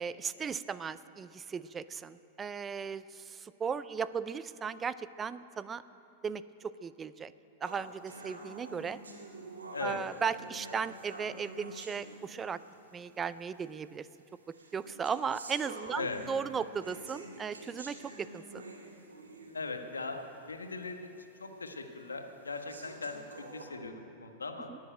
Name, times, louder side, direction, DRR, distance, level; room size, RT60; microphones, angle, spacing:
voice 1, 0.0-5.8 6.2-7.3 7.6-9.0 9.8-12.6 12.9-14.1 14.5-18.6 24.7-24.8, right 6 dB, 20° right, 15 dB, 0.5 m, -36 dB
sound 1, 7.6-12.8 13.6-13.7 14.5-19.8 20.2-20.3 20.8-20.9 21.6-21.7 22.5-23.6, right 2 dB, 80° right, 2.3 m, -48 dB
voice 2, 19.5-20.2 20.5-21.1 21.4-24.7, left 3 dB, 85° left, 5 dB, 1.4 m, -39 dB
20.0 x 7.3 x 9.0 m, 2.8 s
figure-of-eight pair, 95°, 0 cm